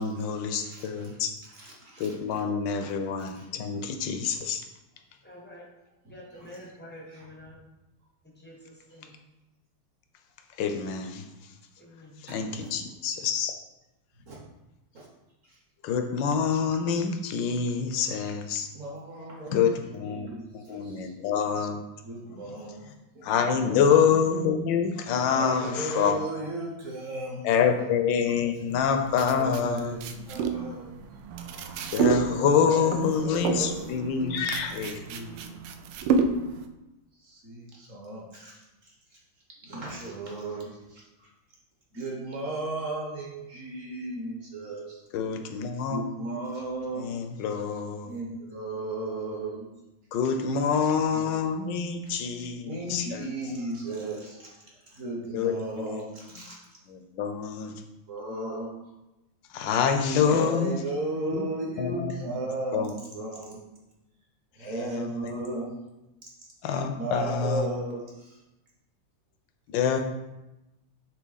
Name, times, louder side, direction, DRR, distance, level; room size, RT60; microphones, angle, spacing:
voice 1, 0.0-1.3 2.0-4.6 10.6-11.2 12.2-13.5 15.8-18.7 19.5-20.3 20.5-21.8 23.2-26.2 27.4-30.0 31.9-35.0 45.1-46.0 47.0-48.1 50.1-53.3 55.3-56.0 56.9-57.7 59.5-60.7 61.3-61.4 61.8-62.1 62.7-62.9 64.7-65.3 66.6-67.7 69.7-70.0, left 6 dB, 70° left, 6 dB, 1.2 m, -26 dB
voice 2, 0.6-1.2 1.5-2.4 2.8-2.9 3.4-3.5 6.0-6.1 6.4-6.5 12.3-12.7 14.3-14.4 14.9-15.1 15.5-15.6 17.5-17.9 18.7-21.1 22.0-23.8 25.3-27.8 29.1-31.0 32.6-35.6 37.2-39.2 39.6-41.3 41.9-45.0 45.9-47.1 48.0-49.7 51.1-51.4 52.1-52.2 52.6-54.5 54.9-56.7 58.1-58.7 60.2-63.6 64.6-65.8 67.0-68.4, right 2 dB, 50° right, -2 dB, 1.1 m, -36 dB
voice 3, 5.2-5.7 6.1-7.6 8.2-9.2 11.8-12.2, left 1 dB, 15° left, -4 dB, 0.3 m, -47 dB
sound 1, 28.7-36.7, right 5 dB, 85° right, 1.4 m, -30 dB
7.4 x 3.3 x 4.0 m, 0.96 s
omnidirectional pair, 2.3 m